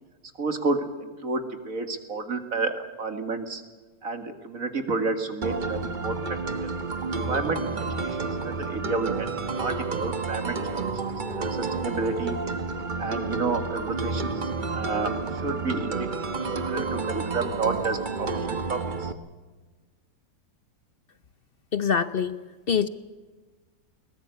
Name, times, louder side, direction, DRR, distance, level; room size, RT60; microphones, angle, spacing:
voice 1, 0.4-3.6 4.0-6.4 6.6-6.7 7.2-8.2 8.4-9.3 9.6-10.9 11.4-12.4 13.0-14.3 14.7-15.1 15.4-16.1 16.7-19.1, right 3 dB, 50° right, 8 dB, 2.4 m, -30 dB
sound 1, 5.4-19.1, right 4 dB, 30° right, 1.1 m, -30 dB
voice 2, 21.7-22.4 22.7-22.9, left 7 dB, 55° left, 14 dB, 0.6 m, -24 dB
22.0 x 20.0 x 8.2 m, 1.3 s
omnidirectional pair, 1.9 m